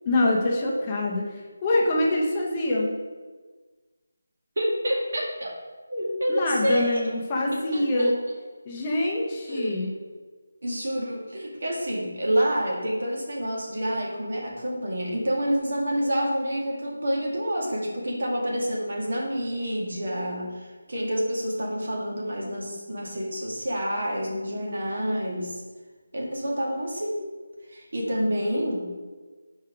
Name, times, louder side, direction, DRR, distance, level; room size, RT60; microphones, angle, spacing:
voice 1, 0.0-2.9 6.3-8.1 8.7-9.9, left 1 dB, 20° left, -2 dB, 0.7 m, -25 dB
voice 2, 4.6-5.5 5.9-7.0 7.5-8.1 9.5-9.9 10.6-25.6 26.1-27.2 27.7-28.8, equal, 60° right, -2 dB, 1.9 m, -28 dB
4.7 x 4.5 x 4.9 m, 1.4 s
figure-of-eight pair, 170°, 0 cm